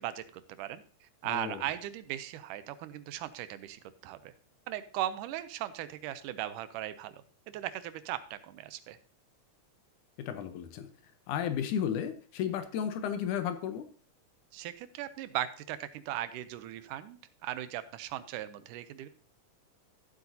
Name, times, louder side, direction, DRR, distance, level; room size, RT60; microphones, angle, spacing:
voice 1, 0.0-4.3 4.7-9.0 14.5-19.1, right 13 dB, 85° right, 13 dB, 2.2 m, -38 dB
voice 2, 1.2-1.6 10.2-10.9 11.3-13.9, left 8 dB, 80° left, 9 dB, 2.3 m, -33 dB
14.0 x 7.9 x 2.7 m, 0.39 s
omnidirectional pair, 3.6 m